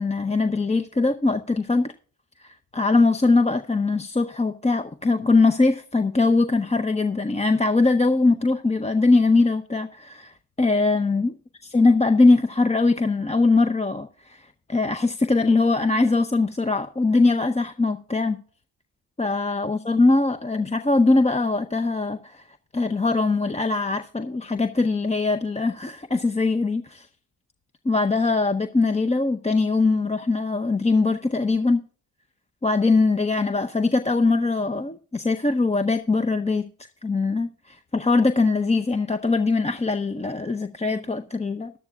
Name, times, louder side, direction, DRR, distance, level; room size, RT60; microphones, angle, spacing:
voice 1, 0.0-1.9 2.4-11.3 11.7-14.4 14.7-18.4 19.2-22.4 22.7-27.1 27.8-31.8 32.6-36.7 37.0-41.7, left 3 dB, 15° left, 0.6 m, -21 dB
15.0 x 11.5 x 2.3 m
cardioid pair, 65°, 44 cm